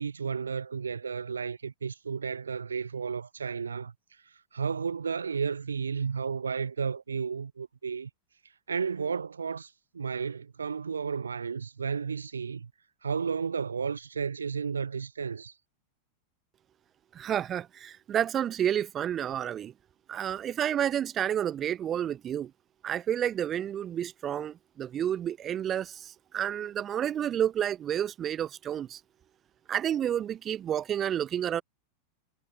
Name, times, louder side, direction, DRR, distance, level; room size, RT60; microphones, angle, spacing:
voice 1, 0.0-8.1 8.7-12.7 13.0-15.6, right 6 dB, 75° right, 0.5 m, -33 dB
voice 2, 17.1-19.7 20.1-22.5 22.8-29.0 29.7-31.6, right 10 dB, 25° right, 1.1 m, -30 dB
figure-of-eight pair, 90°, 0 cm